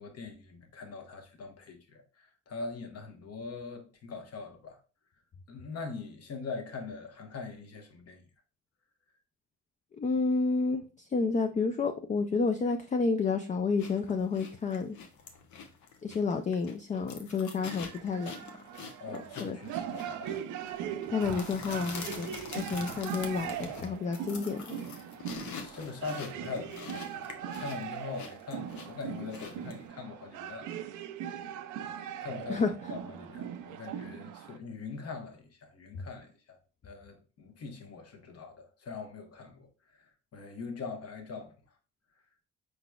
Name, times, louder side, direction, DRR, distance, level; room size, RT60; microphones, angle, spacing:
voice 1, 0.0-4.8 5.5-8.2 19.0-20.5 25.3-30.7 31.0-31.2 32.2-41.8, left 4 dB, 55° left, 1.1 m, -42 dB
voice 2, 10.0-15.0 16.0-18.6 19.1-19.6 21.1-24.8 32.5-32.7, left 4 dB, 25° left, 0.4 m, -30 dB
sound 1, 13.8-29.9, left 5 dB, 70° left, 0.9 m, -46 dB
sound 2, 17.7-34.6, right 9 dB, 80° right, 0.5 m, -40 dB
4.7 x 3.9 x 2.3 m
cardioid pair, 90°, 30 cm